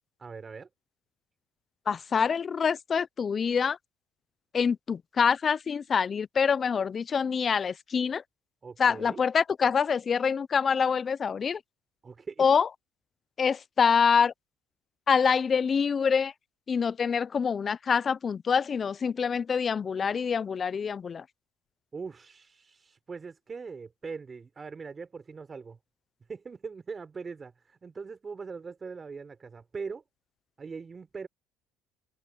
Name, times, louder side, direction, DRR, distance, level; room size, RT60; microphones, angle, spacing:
voice 1, 0.2-0.7 8.6-9.2 12.0-12.4 21.9-25.8 26.3-30.0 30.6-31.3, right 5 dB, 30° right, 4.2 m, -41 dB
voice 2, 1.9-3.8 4.5-8.2 8.8-11.6 12.4-12.7 13.4-14.3 15.1-16.3 16.7-21.2, left 6 dB, 35° left, 0.5 m, -25 dB
cardioid pair, 105°, 0 cm